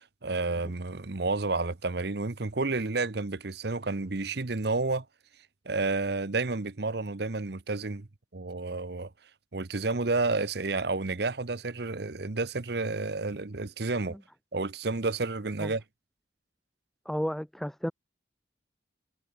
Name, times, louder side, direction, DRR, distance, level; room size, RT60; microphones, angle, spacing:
voice 1, 0.2-5.0 5.7-8.1 8.3-9.1 9.5-14.2 14.5-15.8, right 3 dB, 55° right, 0.9 m, -30 dB
voice 2, 17.1-17.9, equal, ahead, 0.4 m, -32 dB
head